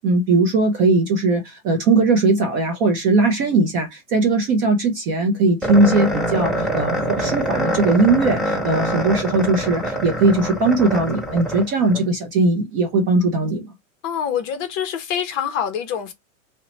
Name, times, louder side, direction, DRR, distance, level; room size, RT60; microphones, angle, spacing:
voice 1, 0.0-13.7, right 3 dB, 25° right, 0.4 m, -19 dB
sound 1, 5.6-12.0, equal, ahead, 1.0 m, -25 dB
voice 2, 14.0-16.1, left 8 dB, 35° left, 0.7 m, -25 dB
2.8 x 2.1 x 3.8 m
hypercardioid pair, 140°, 40 cm